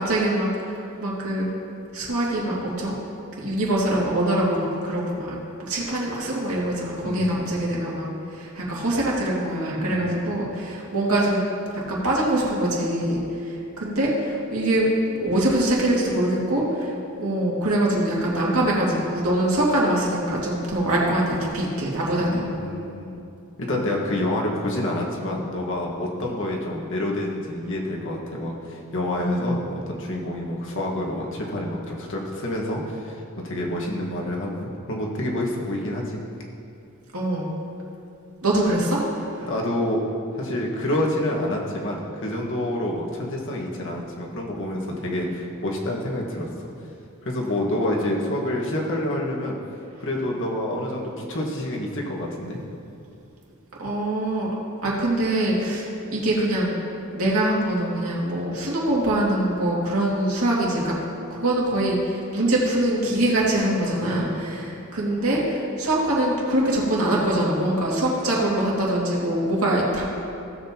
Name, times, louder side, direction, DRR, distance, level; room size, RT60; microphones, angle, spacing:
voice 1, 0.0-1.5 1.9-2.9 3.4-11.4 11.9-14.9 15.1-16.9 17.2-22.4 29.2-29.5 37.1-37.5 38.4-39.0 53.8-54.5 54.8-56.7 57.1-60.9 61.3-70.0, right 1 dB, 75° right, -4 dB, 2.3 m, -23 dB
voice 2, 7.0-7.5 9.8-10.2 22.2-23.2 23.6-36.2 39.5-40.0 40.3-46.5 47.2-49.6 50.0-52.6 63.9-64.4, left 1 dB, 60° left, -2 dB, 1.6 m, -28 dB
16.5 x 7.6 x 3.0 m, 2.7 s
head